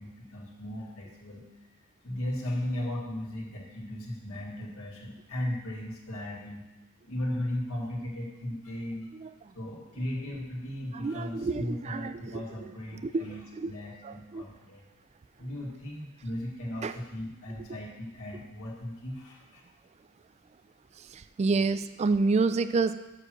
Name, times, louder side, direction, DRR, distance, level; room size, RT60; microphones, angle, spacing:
voice 1, 0.0-1.7 2.0-6.7 7.0-9.1 9.5-14.8 15.4-19.6, left 1 dB, 75° left, -3 dB, 2.0 m, -36 dB
voice 2, 10.9-12.4 13.0-13.2 13.6-13.7 14.0-14.4 16.8-16.9 21.1-22.9, right 4 dB, 30° right, 12 dB, 0.3 m, -28 dB
7.5 x 6.1 x 6.4 m, 1.0 s
head